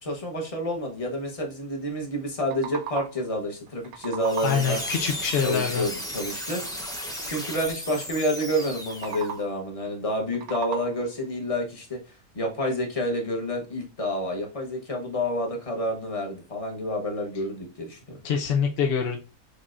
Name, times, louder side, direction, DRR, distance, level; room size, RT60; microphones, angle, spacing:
voice 1, 0.0-4.8 5.4-6.6 7.2-12.0 12.3-18.2, equal, 30° left, 0 dB, 0.9 m, -29 dB
sound 1, 2.2-3.3 3.7-4.8 8.8-9.7 10.1-11.2, right 8 dB, 80° right, 1.0 m, -37 dB
sound 2, 4.2-9.4, equal, 5° left, 0.6 m, -35 dB
voice 2, 4.4-5.9 18.2-19.2, left 7 dB, 60° left, 2 dB, 0.6 m, -25 dB
6.5 x 2.8 x 2.4 m, 0.32 s
omnidirectional pair, 1.6 m